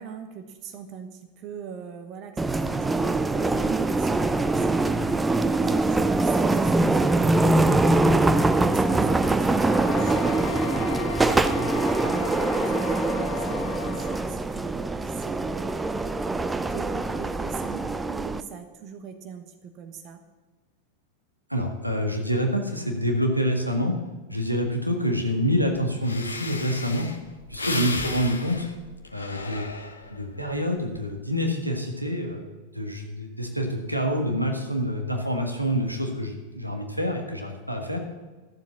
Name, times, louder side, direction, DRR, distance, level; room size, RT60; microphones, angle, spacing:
voice 1, 0.0-8.2 8.6-11.4 11.7-15.8 16.3-20.2 28.0-28.2, right 7 dB, 40° right, 7 dB, 1.2 m, -41 dB
sound 1, 2.4-18.4, right 2 dB, 10° right, 0.6 m, -23 dB
sound 2, 9.4-14.3, left 9 dB, 50° left, 1.2 m, -35 dB
voice 2, 21.5-23.9 24.3-27.1 27.5-28.7 29.1-29.7 30.1-32.5 32.7-38.0, equal, 90° right, 2 dB, 1.7 m, -27 dB
Breathing, 25.7-25.8 26.0-30.3 30.8-31.1, left 3 dB, 75° left, 1.0 m, -34 dB
13.5 x 7.4 x 7.2 m, 1.3 s
figure-of-eight pair, 90°, 0 cm